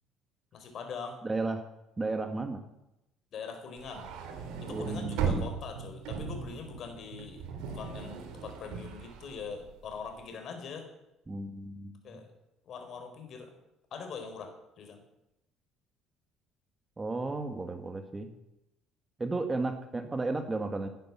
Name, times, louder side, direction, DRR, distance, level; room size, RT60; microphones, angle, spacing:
voice 1, 0.5-1.2 3.3-4.1 4.6-10.9 12.0-12.3 12.7-13.5 13.9-15.0, left 5 dB, 55° left, 6 dB, 4.4 m, -42 dB
voice 2, 1.2-1.6 2.0-2.6 4.7-5.3 11.3-12.0 17.0-18.3 19.2-20.9, right 3 dB, 20° right, 6 dB, 1.6 m, -33 dB
sound 1, 3.8-10.1, right 6 dB, 85° right, 3.3 m, -37 dB
17.0 x 10.5 x 7.5 m, 0.89 s
cardioid pair, 115°, 0 cm